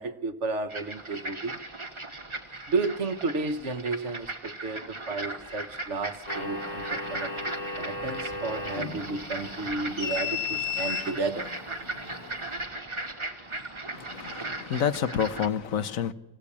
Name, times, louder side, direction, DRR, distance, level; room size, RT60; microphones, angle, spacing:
voice 1, 0.0-1.6 2.7-7.3 7.8-11.5, right 3 dB, 55° right, 1.2 m, -32 dB
sound 1, 0.7-15.5, right 2 dB, 20° right, 1.5 m, -38 dB
sound 2, 6.3-12.6, left 4 dB, 30° left, 2.2 m, -35 dB
voice 2, 13.9-16.1, left 8 dB, 65° left, 1.3 m, -29 dB
25.5 x 16.5 x 8.5 m
omnidirectional pair, 1.5 m